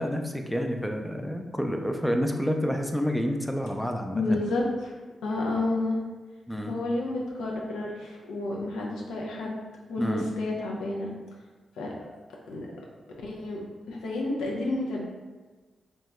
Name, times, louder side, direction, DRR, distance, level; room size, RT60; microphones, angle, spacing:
voice 1, 0.0-4.4 6.5-6.7 10.0-10.3, equal, 5° left, 4 dB, 0.3 m, -29 dB
voice 2, 4.1-4.9 5.2-6.0 6.7-9.6 9.9-11.1 11.8-11.9 12.5-12.7 13.2-13.6 13.9-15.0, left 2 dB, 90° left, -2 dB, 0.4 m, -30 dB
2.7 x 2.2 x 3.1 m, 1.3 s
supercardioid pair, 45°, 0 cm